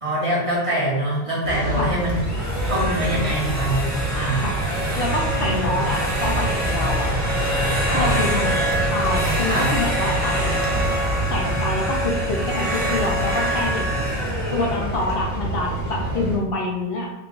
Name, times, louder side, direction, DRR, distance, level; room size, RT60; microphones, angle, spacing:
voice 1, 0.0-2.2 2.6-4.4 5.4-5.8 7.8-8.2 9.4-9.8, right 1 dB, 35° right, -6 dB, 0.8 m, -24 dB
sound 1, 1.4-16.4, right 1 dB, 75° right, 1.2 m, -26 dB
sound 2, 2.1-15.9, right 1 dB, 20° left, 0.7 m, -27 dB
voice 2, 5.0-7.1 7.9-10.6 11.3-14.1 14.5-17.1, left 3 dB, 65° left, -1 dB, 0.8 m, -27 dB
3.7 x 2.2 x 3.6 m, 0.98 s
omnidirectional pair, 1.1 m